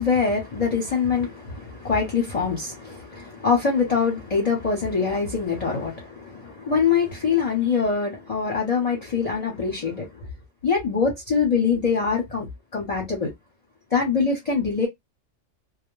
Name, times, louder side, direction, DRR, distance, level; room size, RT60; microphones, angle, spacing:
voice 1, 0.0-10.3 10.6-13.3 13.9-14.9, left 5 dB, 35° left, 0.7 m, -24 dB
2.1 x 2.1 x 3.0 m
omnidirectional pair, 1.3 m